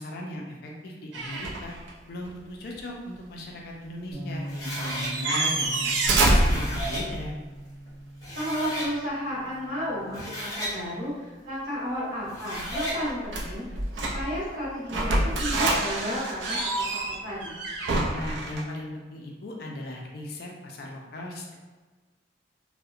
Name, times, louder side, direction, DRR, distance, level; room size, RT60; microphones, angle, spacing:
voice 1, 0.0-1.8 2.1-7.3 18.1-21.5, left 1 dB, 55° left, -1 dB, 0.4 m, -37 dB
sound 1, 1.1-1.9 2.3-2.4 4.5-4.6 4.7-7.3 12.5-14.4 14.9-18.6, right 2 dB, 70° right, 0.4 m, -27 dB
Bass guitar, 4.1-10.4, right 1 dB, 25° right, 1.0 m, -41 dB
sound 2, 4.5-5.1 6.1-7.0 7.9-8.0 8.2-8.9 10.0-10.8 12.2-13.0, equal, 20° left, 0.7 m, -34 dB
voice 2, 8.3-17.6, equal, 50° right, -10 dB, 1.2 m, -33 dB
2.7 x 2.1 x 2.4 m, 1.3 s
head